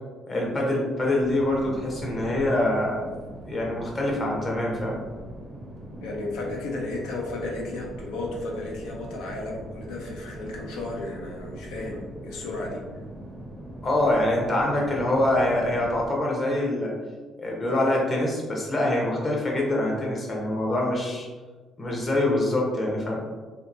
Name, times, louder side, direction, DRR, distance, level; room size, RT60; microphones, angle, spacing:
voice 1, 0.3-3.0 3.5-5.0 13.8-16.9 17.4-21.3 21.8-23.2, left 1 dB, 35° left, -2 dB, 0.8 m, -25 dB
sound 1, 1.2-16.1, right 1 dB, 10° right, 0.5 m, -41 dB
voice 2, 6.0-12.8, left 2 dB, 90° left, -2 dB, 0.5 m, -34 dB
2.7 x 2.1 x 2.6 m, 1.4 s
cardioid pair, 80°, 0 cm